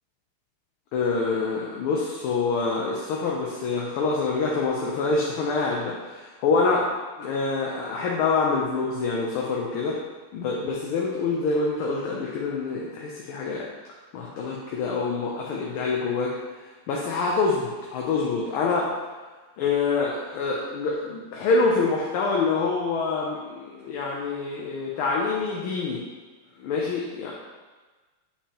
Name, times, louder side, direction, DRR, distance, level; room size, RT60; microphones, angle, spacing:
voice 1, 0.9-6.9 7.2-10.0 10.3-13.7 14.1-16.3 16.9-18.9 19.6-26.0 26.6-27.3, left 4 dB, 75° left, -2 dB, 1.5 m, -26 dB
6.5 x 5.7 x 2.9 m, 1.3 s
omnidirectional pair, 2.4 m